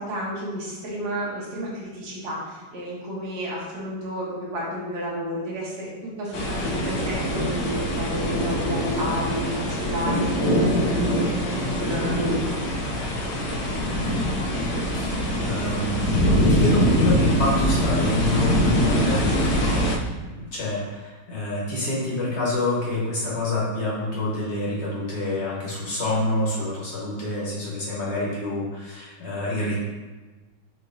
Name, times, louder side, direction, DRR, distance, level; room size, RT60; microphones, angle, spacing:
voice 1, 0.0-12.4, equal, 60° right, -6 dB, 1.7 m, -32 dB
sound 1, 6.3-20.0, equal, 75° left, 1.2 m, -23 dB
voice 2, 14.9-16.0 16.5-29.8, left 2 dB, 40° left, -6 dB, 1.4 m, -27 dB
6.5 x 3.1 x 2.6 m, 1.3 s
omnidirectional pair, 2.0 m